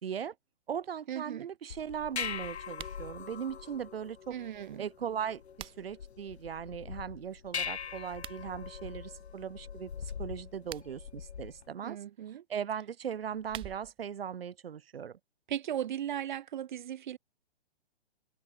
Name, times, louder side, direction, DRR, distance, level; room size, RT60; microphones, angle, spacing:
voice 1, 0.0-0.3 0.7-4.3 4.8-9.9 10.2-12.0 12.5-15.2, right 8 dB, 65° right, 4.8 m, -38 dB
voice 2, 1.1-1.5 4.3-4.9 11.8-12.4 15.5-17.2, right 10 dB, 45° right, 3.1 m, -37 dB
sound 1, 1.7-11.7, left 7 dB, 80° left, 1.9 m, -42 dB
sound 2, 2.7-3.0 5.1-6.0 8.1-8.4 10.5-11.1 13.1-14.1, right 14 dB, 15° right, 6.0 m, -47 dB
hypercardioid pair, 165°, 32 cm